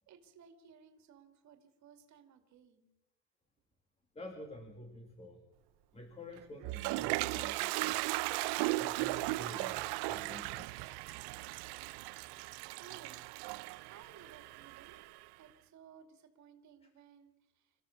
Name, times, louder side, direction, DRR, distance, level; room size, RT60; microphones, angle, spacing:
voice 1, 0.1-2.9 12.8-13.2 13.9-15.0 15.4-17.7, right 7 dB, 45° right, 6 dB, 2.4 m, -59 dB
voice 2, 4.2-5.4 5.9-8.1 8.8-10.9, left 1 dB, 15° left, 5 dB, 2.0 m, -49 dB
Toilet flush, 6.4-15.2, right 20 dB, 75° right, 0.7 m, -37 dB
26.5 x 14.5 x 7.1 m, 1.0 s
cardioid pair, 170°, 40 cm